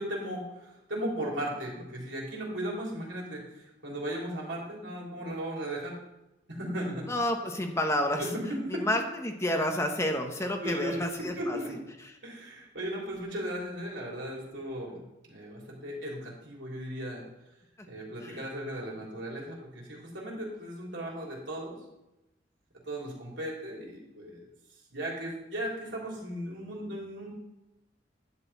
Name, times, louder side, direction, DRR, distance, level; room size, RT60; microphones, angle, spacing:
voice 1, 0.0-6.0 6.5-7.1 8.2-9.0 10.6-11.7 12.2-17.3 17.8-21.8 22.9-24.5 24.9-27.3, right 1 dB, 85° right, -3 dB, 3.4 m, -36 dB
voice 2, 7.1-8.3 8.7-11.8 17.8-17.9 18.2-18.5, left 1 dB, 15° left, 3 dB, 1.2 m, -30 dB
11.0 x 8.2 x 4.1 m, 0.94 s
head